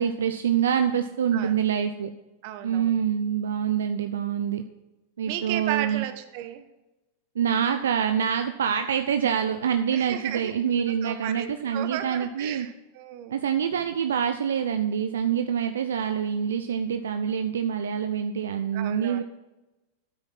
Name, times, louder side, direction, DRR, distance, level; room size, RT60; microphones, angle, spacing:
voice 1, 0.0-2.1 2.6-4.6 5.2-6.0 7.4-12.7 13.3-19.2, right 8 dB, 80° right, 8 dB, 0.6 m, -26 dB
voice 2, 2.4-2.9 5.3-6.6 9.9-10.5 10.9-13.4 18.7-19.2, right 11 dB, 55° right, 10 dB, 1.2 m, -34 dB
9.7 x 8.6 x 5.9 m, 1.0 s
hypercardioid pair, 105°, 0 cm